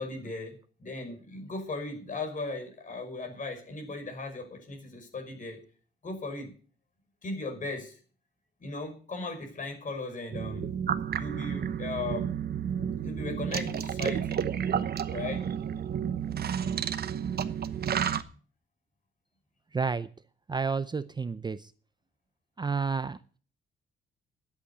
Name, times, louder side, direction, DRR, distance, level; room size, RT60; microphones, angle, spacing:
voice 1, 0.0-5.6 6.0-6.5 7.2-8.0 8.6-10.7 11.1-12.3 13.0-14.5 15.1-15.5, left 3 dB, 40° left, 4 dB, 5.7 m, -37 dB
sound 1, 10.3-18.2, right 8 dB, 50° right, 1.1 m, -31 dB
voice 2, 19.7-20.1 20.5-21.7 22.6-23.2, right 5 dB, 20° right, 14 dB, 0.6 m, -30 dB
11.0 x 8.5 x 8.0 m, 0.41 s
cardioid pair, 90°, 20 cm